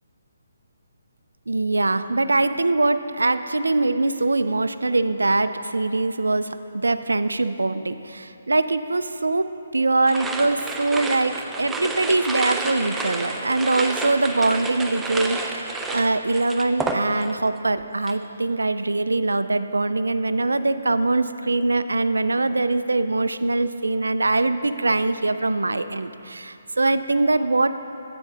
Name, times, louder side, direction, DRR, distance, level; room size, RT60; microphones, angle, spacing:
voice 1, 1.5-27.8, right 2 dB, 85° right, 12 dB, 0.3 m, -23 dB
sound 1, 10.1-17.5 17.8-18.2, right 3 dB, 10° right, 0.4 m, -30 dB
9.6 x 7.7 x 2.8 m, 2.9 s
figure-of-eight pair, 145°, 0 cm